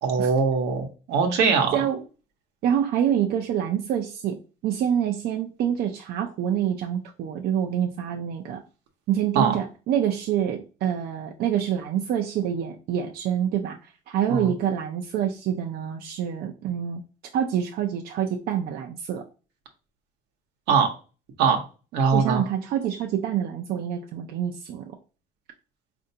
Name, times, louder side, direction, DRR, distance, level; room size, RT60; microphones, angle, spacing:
voice 1, 0.0-1.8 9.3-9.6 14.3-14.5 20.7-20.9 21.4-21.6 21.9-22.4, right 5 dB, 85° right, 4 dB, 0.9 m, -21 dB
voice 2, 2.6-4.4 4.6-8.6 9.1-17.0 17.3-19.2 22.1-24.9, right 9 dB, 65° right, 2 dB, 0.5 m, -26 dB
4.3 x 2.6 x 2.7 m, 0.34 s
cardioid pair, 110°, 17 cm